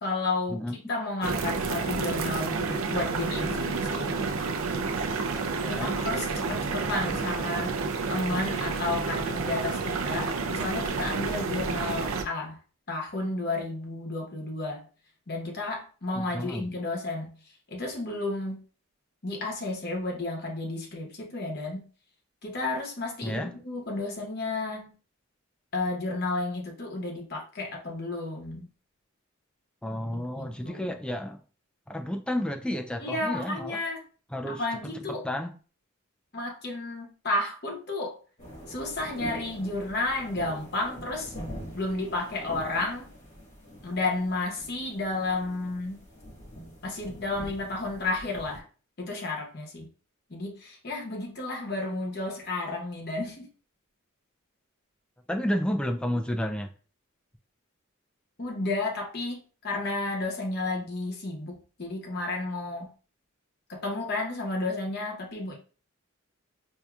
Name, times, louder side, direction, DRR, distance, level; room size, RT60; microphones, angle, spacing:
voice 1, 0.0-0.6 0.9-4.1 5.7-7.7 8.1-12.5 12.9-14.8 15.3-17.3 17.7-18.6 19.2-21.8 22.4-24.9 25.7-28.7 30.1-30.8 33.0-34.0 34.5-35.2 36.3-38.2 38.7-41.3 41.7-43.1 43.8-46.0 46.8-48.6 49.0-49.9 50.3-53.5 58.4-62.9 63.7-65.6, left 2 dB, 50° left, 1.1 m, -32 dB
sound 1, 1.2-12.2, right 4 dB, 75° right, 0.5 m, -30 dB
voice 2, 5.6-6.0 16.1-16.7 23.2-23.6 29.8-31.4 31.9-33.8 34.3-35.6 55.3-56.7, equal, 5° left, 0.3 m, -31 dB
sound 2, 38.4-48.6, equal, 35° left, 1.6 m, -44 dB
4.6 x 2.7 x 2.4 m
head